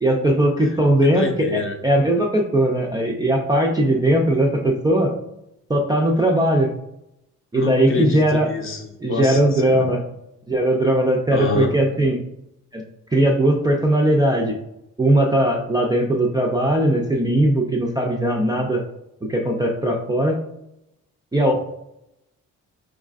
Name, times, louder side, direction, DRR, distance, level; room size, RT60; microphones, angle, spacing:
voice 1, 0.0-5.1 5.7-6.7 7.5-8.5 9.0-10.0 10.5-12.2 12.7-12.8 13.1-14.6 15.0-18.8 19.3-20.4 21.3-21.5, right 1 dB, 15° right, -2 dB, 0.3 m, -19 dB
voice 2, 0.6-1.8 7.5-9.9 11.3-11.7 21.5-21.6, left 3 dB, 40° left, 4 dB, 0.6 m, -27 dB
4.6 x 2.4 x 2.4 m, 0.83 s
cardioid pair, 105°, 32 cm